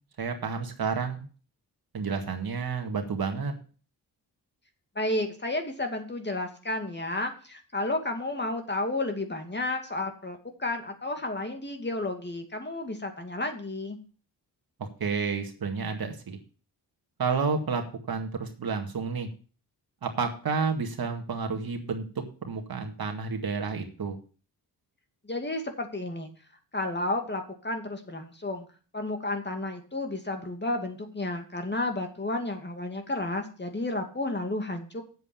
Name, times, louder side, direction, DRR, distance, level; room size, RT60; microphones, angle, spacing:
voice 1, 0.2-1.2 1.9-3.5 14.8-16.4 17.2-17.8 18.1-19.3 20.0-22.1 22.4-24.2, right 5 dB, 60° right, 4 dB, 2.0 m, -30 dB
voice 2, 5.0-14.0 25.2-26.3 26.7-28.7 28.9-35.0, left 2 dB, 25° left, 5 dB, 2.3 m, -32 dB
8.1 x 7.6 x 7.0 m, 0.39 s
cardioid pair, 70°, 41 cm